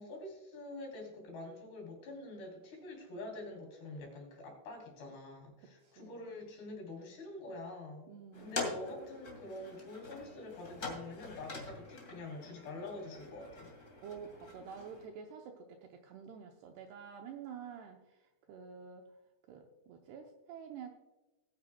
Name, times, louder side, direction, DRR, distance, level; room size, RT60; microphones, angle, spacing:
voice 1, 0.0-8.1 8.4-13.7, left 2 dB, 60° left, 0 dB, 5.2 m, -46 dB
voice 2, 5.8-6.2 8.1-8.8 14.0-19.1 19.5-20.9, right 7 dB, 80° right, 3 dB, 2.4 m, -49 dB
sound 1, 8.3-15.1, left 3 dB, 35° left, 1.3 m, -44 dB
19.5 x 9.6 x 2.2 m, 1.1 s
omnidirectional pair, 5.7 m